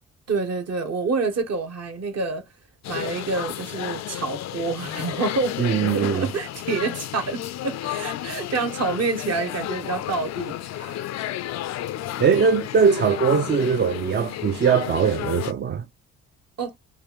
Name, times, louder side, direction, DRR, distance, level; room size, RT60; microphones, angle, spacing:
voice 1, 0.3-2.4 2.9-5.6 5.9-11.1 16.6-16.7, right 4 dB, 55° right, 1.3 m, -27 dB
sound 1, 2.8-15.5, left 13 dB, 60° left, 0.4 m, -32 dB
voice 2, 5.6-6.3 12.2-15.9, right 6 dB, 35° right, 0.4 m, -21 dB
3.5 x 2.5 x 3.0 m
cardioid pair, 90°, 30 cm